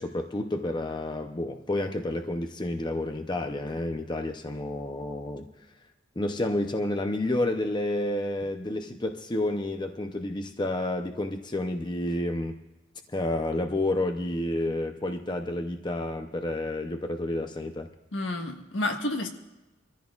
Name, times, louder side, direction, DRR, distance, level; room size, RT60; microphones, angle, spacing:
voice 1, 0.0-5.4 6.2-12.6 13.1-17.9, left 1 dB, 25° left, 6 dB, 0.6 m, -30 dB
voice 2, 18.1-19.3, left 2 dB, 70° left, 2 dB, 1.6 m, -30 dB
24.0 x 14.5 x 2.4 m, 0.99 s
head